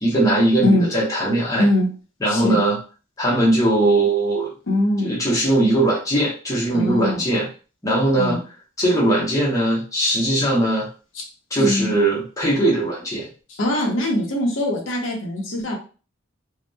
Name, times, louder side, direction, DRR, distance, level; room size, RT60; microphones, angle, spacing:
voice 1, 0.0-1.7 2.2-2.8 3.2-4.5 5.0-7.5 7.8-8.4 8.8-10.9 11.5-13.3, right 1 dB, 15° left, -6 dB, 0.7 m, -20 dB
voice 2, 2.3-2.6 4.7-5.1 6.7-7.2 8.2-8.4 11.2-11.3 11.6-11.9 13.5-15.8, left 1 dB, 90° left, -1 dB, 0.7 m, -22 dB
2.7 x 2.0 x 2.2 m, 0.36 s
head